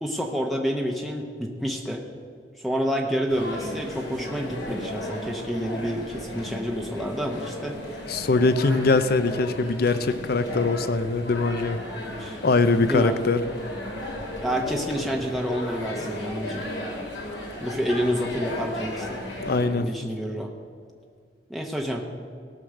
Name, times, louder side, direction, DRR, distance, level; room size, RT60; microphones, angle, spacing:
voice 1, 0.0-2.0 2.6-7.7 12.2-12.4 12.9-13.2 14.4-16.7 17.6-19.2 19.7-20.5 21.5-22.1, equal, ahead, 1 dB, 0.8 m, -28 dB
sound 1, 3.3-19.6, left 1 dB, 75° left, 3.0 m, -35 dB
voice 2, 8.1-11.8 12.4-13.4 19.4-20.1, left 3 dB, 55° left, 12 dB, 0.6 m, -22 dB
17.5 x 6.4 x 6.5 m, 2.2 s
head